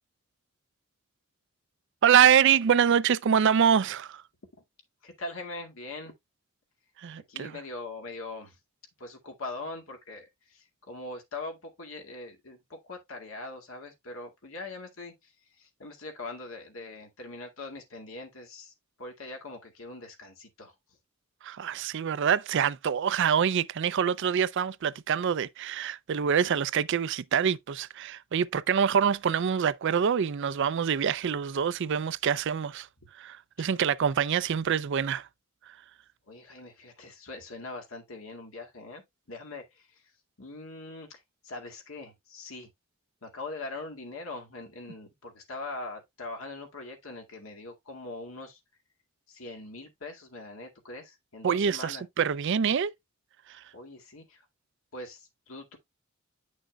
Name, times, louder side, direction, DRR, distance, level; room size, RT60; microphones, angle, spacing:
voice 1, 2.0-4.2 7.0-7.5 21.4-32.9 33.2-35.3 51.4-52.9 53.5-53.6, right 8 dB, 60° right, 0.4 m, -25 dB
voice 2, 5.0-6.1 7.3-8.6 9.0-21.0 33.6-33.7 36.3-40.1 40.4-42.7 43.2-48.6 49.3-52.0 53.7-54.5 54.9-55.8, left 2 dB, 80° left, 2.1 m, -42 dB
9.1 x 6.3 x 2.3 m
head